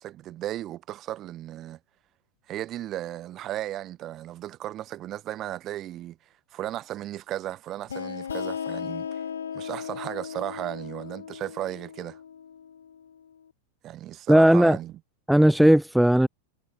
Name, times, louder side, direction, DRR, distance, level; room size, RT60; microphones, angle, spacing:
voice 1, 0.0-1.8 2.5-6.2 6.5-9.2 9.5-12.2 13.8-14.9, right 13 dB, 35° right, 4.6 m, -35 dB
sound 1, 7.9-13.3, left 7 dB, 70° left, 3.4 m, -36 dB
voice 2, 14.3-14.8 15.3-16.3, right 1 dB, ahead, 0.3 m, -17 dB
figure-of-eight pair, 90°, 0 cm